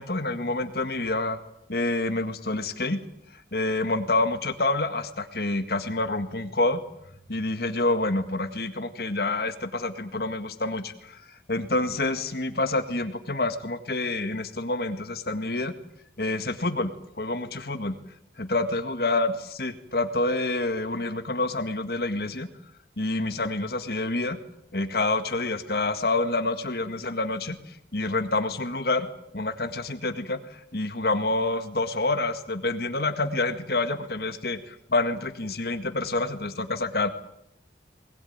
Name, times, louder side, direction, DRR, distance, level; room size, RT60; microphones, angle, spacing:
voice 1, 0.0-1.4 1.7-3.0 3.5-6.8 7.3-11.2 11.5-15.7 16.2-16.9 17.2-18.0 18.4-22.5 23.0-24.4 24.7-29.1 29.3-37.1, left 2 dB, 60° left, 9 dB, 1.9 m, -27 dB
21.5 x 21.5 x 9.5 m, 0.77 s
head